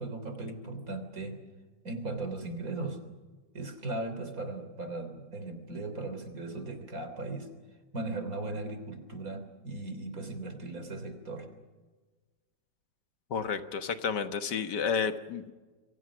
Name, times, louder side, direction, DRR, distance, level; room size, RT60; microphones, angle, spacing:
voice 1, 0.0-1.4 1.8-3.0 3.5-7.5 7.9-11.5, right 2 dB, 50° right, 8 dB, 3.9 m, -37 dB
voice 2, 13.3-15.5, left 6 dB, 75° left, 9 dB, 1.9 m, -31 dB
28.0 x 23.5 x 6.2 m, 1.3 s
omnidirectional pair, 1.9 m